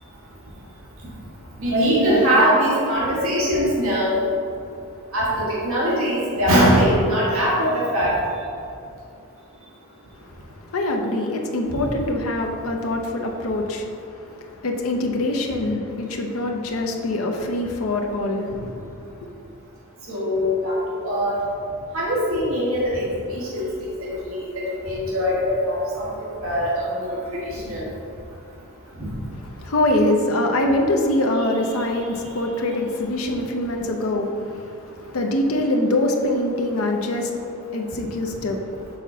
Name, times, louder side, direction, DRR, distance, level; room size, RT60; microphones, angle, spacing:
voice 1, 1.6-4.2 5.1-8.2 20.1-20.7 21.0-21.4 21.9-23.0 23.3-23.6 24.1-26.0 26.4-27.2 27.4-27.9, equal, 65° right, -6 dB, 1.4 m, -21 dB
voice 2, 10.2-19.3 29.4-38.6, left 1 dB, 70° left, 2 dB, 0.6 m, -24 dB
5.7 x 3.7 x 5.4 m, 2.6 s
head